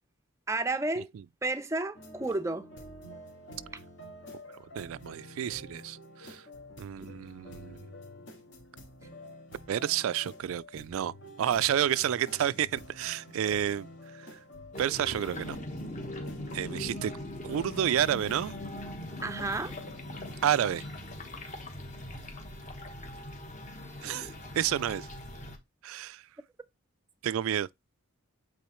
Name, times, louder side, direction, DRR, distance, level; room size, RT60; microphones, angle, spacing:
voice 1, 0.5-1.1 1.4-2.7 7.0-7.1 19.2-19.7, right 2 dB, 15° right, 0.5 m, -31 dB
sound 1, 1.9-20.5, left 1 dB, 55° left, 2.2 m, -49 dB
voice 2, 4.8-6.4 6.8-7.9 9.7-11.1 11.4-13.9 14.1-14.4 14.8-15.6 16.5-17.1 17.4-18.5 20.4-20.8 24.0-25.1 25.8-26.2 27.2-27.7, right 10 dB, 70° right, 0.3 m, -30 dB
sound 2, 14.7-25.6, left 1 dB, 35° left, 1.3 m, -41 dB
8.5 x 3.8 x 3.0 m
head